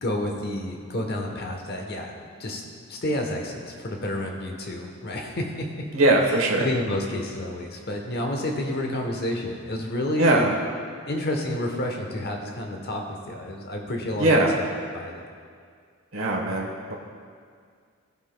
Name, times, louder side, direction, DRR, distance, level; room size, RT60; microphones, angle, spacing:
voice 1, 0.0-2.1 2.4-2.6 2.9-5.7 6.6-10.5 11.1-14.6 14.9-15.2, left 1 dB, 50° left, 2 dB, 0.9 m, -30 dB
voice 2, 5.9-6.7 10.2-10.5 14.2-14.5 16.1-16.9, right 2 dB, 70° right, -1 dB, 1.1 m, -21 dB
16.0 x 5.8 x 2.2 m, 2.1 s
head